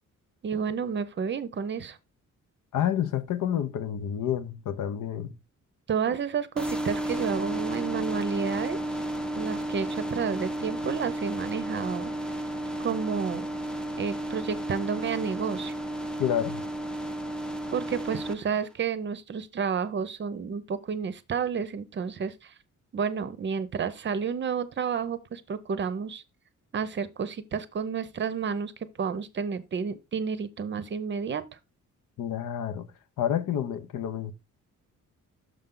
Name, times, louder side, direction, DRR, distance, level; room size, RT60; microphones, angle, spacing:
voice 1, 0.4-2.0 5.9-8.8 9.4-12.1 12.8-13.5 14.0-15.7 17.7-22.5 22.9-26.2 26.7-28.7 29.0-31.4, right 6 dB, 35° right, 0.6 m, -30 dB
voice 2, 2.7-5.3 16.2-16.6 32.2-32.9 33.2-34.3, left 10 dB, 85° left, 0.9 m, -29 dB
sound 1, 6.6-18.3, right 1 dB, 5° left, 0.5 m, -33 dB
6.4 x 5.5 x 3.7 m
wide cardioid pair, 160°, 31 cm